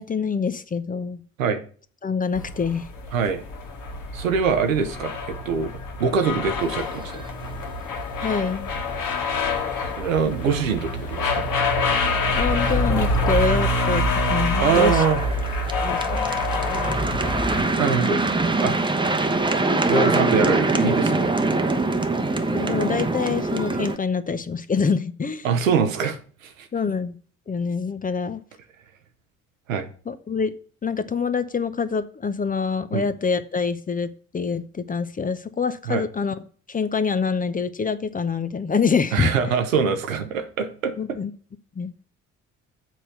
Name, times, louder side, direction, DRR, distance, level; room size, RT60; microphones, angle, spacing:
voice 1, 0.0-1.2 2.0-2.9 8.2-8.7 12.3-14.0 14.3-15.0 15.8-16.4 22.4-25.5 26.7-27.2 27.5-28.4 30.1-30.5 30.8-36.4 36.7-39.3 41.0-41.3 41.8-41.9, left 5 dB, 20° left, 12 dB, 0.7 m, -25 dB
sound 1, 2.3-17.6, left 2 dB, 55° left, 1.7 m, -26 dB
voice 2, 3.1-3.4 4.1-5.7 6.0-7.2 10.0-11.4 14.6-15.2 17.8-18.2 18.6-18.8 19.9-21.4 25.4-26.2 26.4-26.7 29.7-29.9 32.9-33.0 35.9-36.0 39.1-41.2, right 6 dB, 85° right, 7 dB, 1.0 m, -23 dB
sound 2, 6.8-7.5 7.7-7.8 8.1-8.3 8.7-8.8 10.6-10.7 11.3-11.4 11.7-24.0, right 2 dB, 10° right, 1.0 m, -24 dB
7.4 x 4.3 x 6.8 m, 0.42 s
figure-of-eight pair, 50°, 39 cm